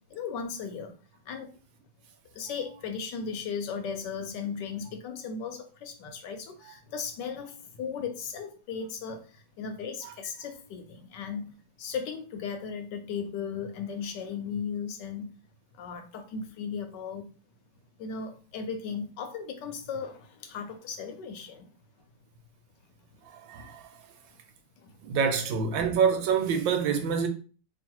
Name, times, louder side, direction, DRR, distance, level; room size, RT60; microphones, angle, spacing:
voice 1, 0.1-0.9 1.3-1.5 2.3-11.5 11.8-15.3 15.7-17.3 18.0-21.6 24.8-25.0, left 6 dB, 75° left, 1.2 m, -36 dB
voice 2, 23.2-23.9 25.0-27.3, right 6 dB, 80° right, 1.4 m, -26 dB
3.1 x 2.5 x 4.4 m
omnidirectional pair, 2.1 m